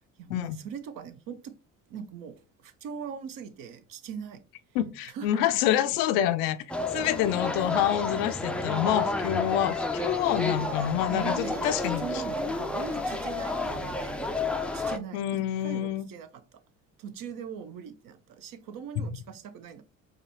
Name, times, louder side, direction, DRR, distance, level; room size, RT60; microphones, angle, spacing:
voice 1, 0.2-1.5 1.9-4.4 5.0-5.4 10.4-10.6 11.1-14.3 14.7-16.6 17.0-19.8, right 7 dB, 55° right, 0.7 m, -41 dB
voice 2, 4.7-12.2 15.1-16.1 19.0-19.1, left 12 dB, 70° left, 0.5 m, -27 dB
sound 1, 6.7-15.0, left 2 dB, 5° left, 0.4 m, -30 dB
4.8 x 2.3 x 2.9 m
hypercardioid pair, 60°, 41 cm